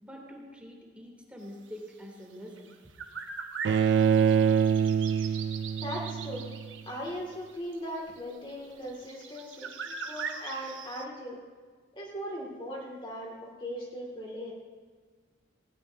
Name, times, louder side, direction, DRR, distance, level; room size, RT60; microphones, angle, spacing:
voice 1, 0.0-2.7, equal, 5° right, -2 dB, 2.9 m, -45 dB
sound 1, 2.6-11.1, right 5 dB, 90° right, 1.2 m, -41 dB
Bowed string instrument, 3.6-6.7, right 7 dB, 65° right, 0.3 m, -25 dB
voice 2, 5.8-6.5 6.9-11.4 11.9-14.5, equal, 30° left, -2 dB, 2.2 m, -39 dB
18.5 x 18.0 x 2.7 m, 1.5 s
head